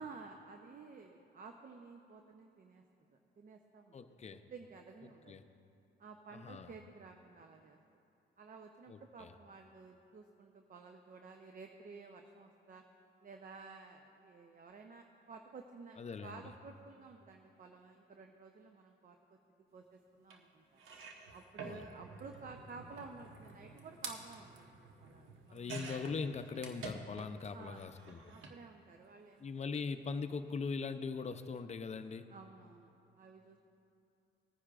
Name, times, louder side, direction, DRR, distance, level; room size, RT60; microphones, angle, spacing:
voice 1, 0.0-4.2 4.5-5.3 6.0-7.8 8.4-12.8 13.2-19.4 19.7-20.8 21.3-25.7 27.5-27.9 28.3-29.7 32.3-33.6, right 4 dB, 45° right, 4 dB, 0.8 m, -53 dB
voice 2, 3.9-4.4 5.3-5.4 6.3-6.7 8.9-9.3 16.0-16.5 21.6-21.8 25.5-28.2 29.4-32.3, left 5 dB, 35° left, 9 dB, 0.6 m, -41 dB
sound 1, 20.3-20.4 20.8-27.5 27.8-28.6 29.6-29.8 30.0-30.1, right 4 dB, 85° right, 1.1 m, -49 dB
20.0 x 9.9 x 2.5 m, 2.7 s
cardioid pair, 90°, 20 cm